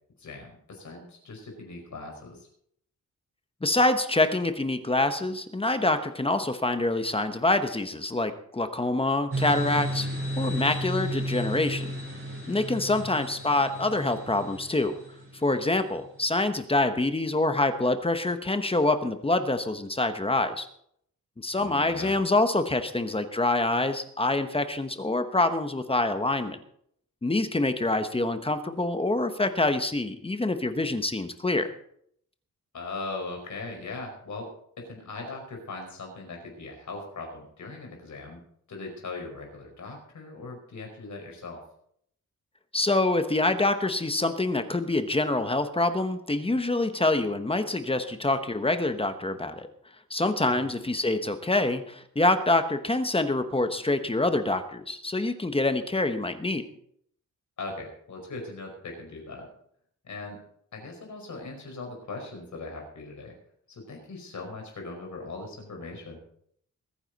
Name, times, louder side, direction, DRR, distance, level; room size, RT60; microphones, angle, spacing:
voice 1, 0.2-2.5 12.9-13.1 21.5-22.1 32.7-34.5 34.8-38.4 38.7-41.6 50.5-50.8 57.6-59.5 60.0-60.4 60.7-63.3 63.7-66.2, left 3 dB, 60° left, 2 dB, 5.4 m, -39 dB
voice 2, 3.6-10.1 10.4-11.9 12.5-14.9 15.4-20.7 21.4-26.6 27.2-31.7 42.7-49.7 50.1-56.6, left 2 dB, 15° left, 8 dB, 1.0 m, -26 dB
sound 1, 9.3-15.8, equal, 40° right, 4.3 m, -33 dB
22.5 x 9.8 x 4.1 m, 0.67 s
wide cardioid pair, 145°, 33 cm